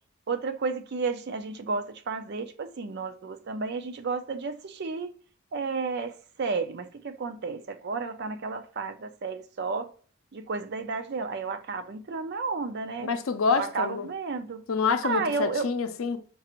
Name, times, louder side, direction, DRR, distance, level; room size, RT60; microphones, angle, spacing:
voice 1, 0.3-5.1 5.5-9.9 10.3-13.1 13.5-14.6 15.0-15.7, right 4 dB, 55° right, 0.5 m, -32 dB
voice 2, 13.0-14.1 14.7-16.2, left 5 dB, 80° left, 0.5 m, -27 dB
4.6 x 2.5 x 2.9 m
head